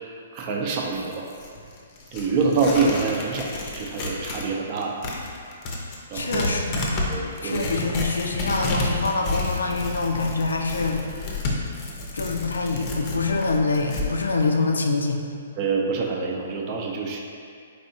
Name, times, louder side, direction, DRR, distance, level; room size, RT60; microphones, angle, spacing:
voice 1, 0.3-1.3 2.1-3.5 3.7-5.0 6.1-6.4 7.1-7.8 15.6-17.2, right 4 dB, 35° right, 0 dB, 0.5 m, -25 dB
Tearing, 0.8-4.5 4.8-14.1, left 2 dB, 35° left, 0.6 m, -30 dB
voice 2, 6.1-7.0 7.4-11.0 12.1-15.2, left 3 dB, 80° left, 3 dB, 0.4 m, -25 dB
4.4 x 3.4 x 2.7 m, 2.3 s
figure-of-eight pair, 125°, 0 cm